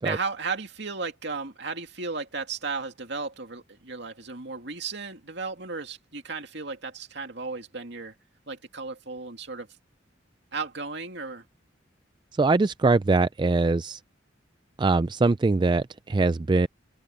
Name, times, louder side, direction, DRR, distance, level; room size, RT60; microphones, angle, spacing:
voice 1, 0.0-8.1 8.5-9.7 10.5-11.4, right 4 dB, 65° right, 2.5 m, -34 dB
voice 2, 12.3-14.0 14.8-16.7, right 3 dB, 25° right, 0.3 m, -22 dB
head